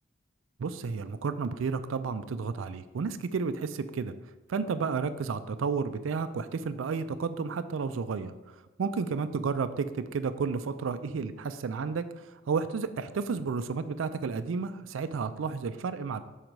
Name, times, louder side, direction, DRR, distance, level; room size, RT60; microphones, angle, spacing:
voice 1, 0.6-4.1 4.5-16.2, right 5 dB, 85° right, 11 dB, 0.4 m, -32 dB
6.4 x 4.6 x 5.1 m, 1.2 s
head